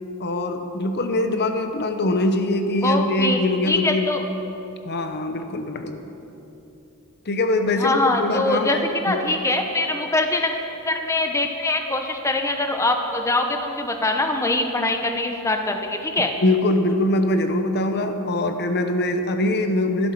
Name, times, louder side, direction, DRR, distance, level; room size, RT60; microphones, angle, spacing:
voice 1, 0.2-4.0 4.8-6.0 7.3-9.2 16.4-20.1, left 1 dB, 50° left, 7 dB, 0.8 m, -23 dB
voice 2, 2.8-3.4 3.7-4.2 7.8-8.8 9.0-10.5 10.9-16.3, left 2 dB, 15° left, 4 dB, 0.8 m, -23 dB
12.0 x 12.0 x 5.9 m, 2.9 s
head